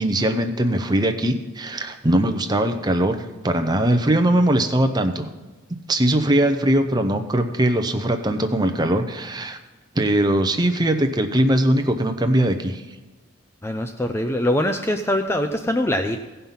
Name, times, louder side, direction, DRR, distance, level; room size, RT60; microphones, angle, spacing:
voice 1, 0.0-3.2 3.4-5.3 5.9-9.6 9.9-12.8, right 1 dB, 20° right, 7 dB, 0.7 m, -20 dB
voice 2, 13.6-16.2, left 1 dB, 10° left, 6 dB, 0.4 m, -23 dB
16.0 x 5.5 x 5.7 m, 1.2 s
head